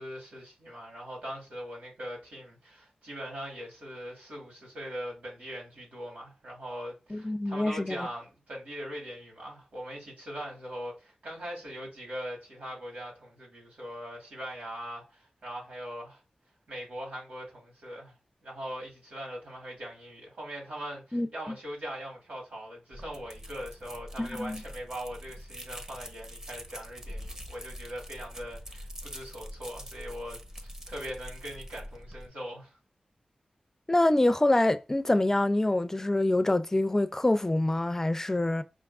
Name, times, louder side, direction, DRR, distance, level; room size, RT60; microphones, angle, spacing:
voice 1, 0.0-16.2 16.7-18.1 18.4-32.8, equal, 85° right, 2.8 m, -41 dB
voice 2, 7.1-8.1 21.1-21.3 24.2-24.6 33.9-38.6, left 1 dB, 15° left, 0.4 m, -26 dB
sound 1, 22.9-32.3, equal, 25° right, 0.8 m, -44 dB
5.2 x 3.5 x 2.4 m
wide cardioid pair, 120°, 3 cm